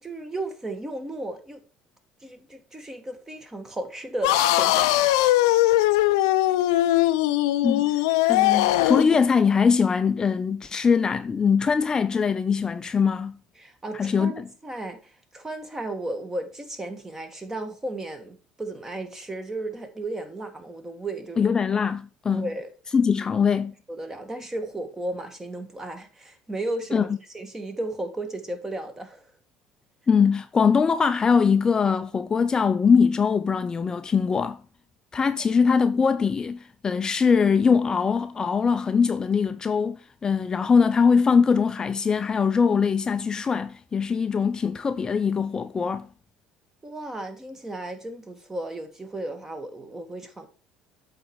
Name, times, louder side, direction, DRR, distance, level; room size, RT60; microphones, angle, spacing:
voice 1, 0.0-1.6 2.2-5.0 13.6-21.5 22.3-22.7 23.9-27.1 27.3-29.3 46.8-50.5, right 2 dB, 20° right, 1.6 m, -34 dB
sound 1, 4.2-9.2, left 15 dB, 85° left, 0.5 m, -20 dB
voice 2, 8.2-13.3 13.9-14.4 21.4-22.5 22.9-23.7 26.9-27.1 30.1-34.6 35.1-46.1, left 6 dB, 30° left, 0.5 m, -22 dB
7.9 x 4.1 x 4.7 m
supercardioid pair, 80°, 2 cm